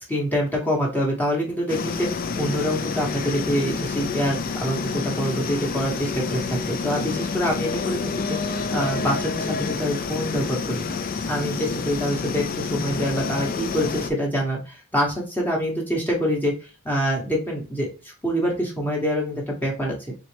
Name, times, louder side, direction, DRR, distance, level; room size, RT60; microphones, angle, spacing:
voice 1, 0.1-8.1 8.4-10.9 11.3-16.5 16.8-20.1, equal, 10° left, -2 dB, 1.0 m, -25 dB
sound 1, 1.7-14.1, left 4 dB, 40° left, 0.4 m, -28 dB
4.1 x 3.1 x 3.1 m, 0.33 s
head